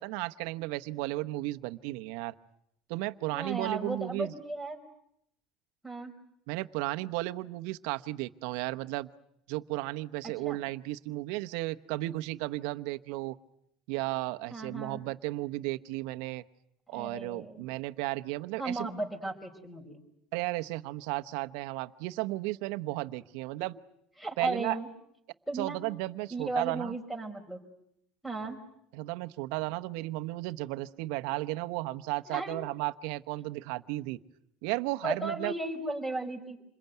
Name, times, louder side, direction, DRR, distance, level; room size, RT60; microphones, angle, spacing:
voice 1, 0.0-2.3 2.9-4.3 6.5-9.1 9.5-13.4 13.9-16.4 16.9-18.9 20.3-23.8 24.4-24.8 25.5-27.0 28.4-28.5 28.9-34.2 34.6-35.5, right 19 dB, 75° right, 10 dB, 1.0 m, -34 dB
voice 2, 3.3-4.8 5.8-6.1 10.4-10.6 14.5-15.0 16.9-17.7 18.6-20.0 24.2-24.9 25.5-25.8 26.3-27.6 28.2-28.6 32.3-32.5 35.0-36.6, right 2 dB, 5° left, 5 dB, 5.0 m, -35 dB
27.5 x 21.5 x 9.3 m, 0.75 s
supercardioid pair, 125°, 0 cm